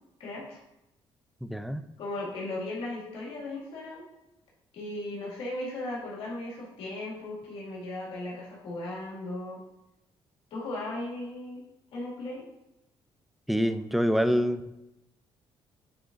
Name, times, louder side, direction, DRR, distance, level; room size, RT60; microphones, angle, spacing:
voice 1, 0.2-0.6 2.0-4.1 4.7-9.6 10.5-11.6 11.9-12.5, left 2 dB, 70° left, -5 dB, 2.1 m, -37 dB
voice 2, 1.4-1.9 13.5-14.6, equal, ahead, 11 dB, 0.3 m, -26 dB
8.5 x 4.6 x 2.6 m, 0.91 s
cardioid pair, 120°, 10 cm